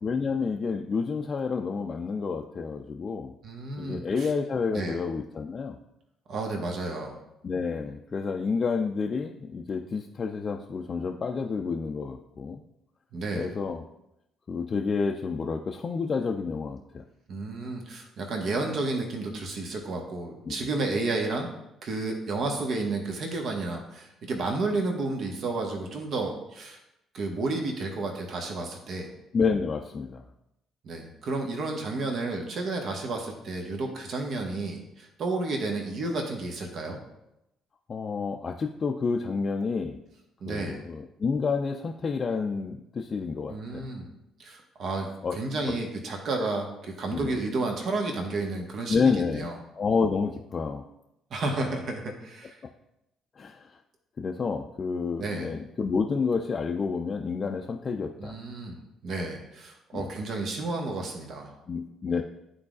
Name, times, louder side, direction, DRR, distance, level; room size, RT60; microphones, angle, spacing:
voice 1, 0.0-3.3 3.8-5.8 7.4-12.6 13.3-13.8 14.5-17.0 20.5-20.7 29.3-30.2 37.9-40.0 40.5-43.9 45.2-45.4 46.4-46.5 47.1-47.4 48.9-49.5 49.8-50.8 53.4-53.6 54.2-58.4 59.9-60.1 61.7-62.2, left 5 dB, 45° left, 2 dB, 0.5 m, -29 dB
voice 2, 3.4-4.3 4.7-5.0 6.3-7.2 13.1-13.5 17.3-21.5 21.8-26.8 27.1-29.1 30.8-37.0 40.4-40.8 43.5-44.1 44.4-49.6 51.3-52.6 55.2-55.5 58.2-58.7 59.0-61.5, right 3 dB, 55° right, 2 dB, 1.2 m, -31 dB
11.5 x 3.9 x 2.4 m, 0.86 s
hypercardioid pair, 45°, 0 cm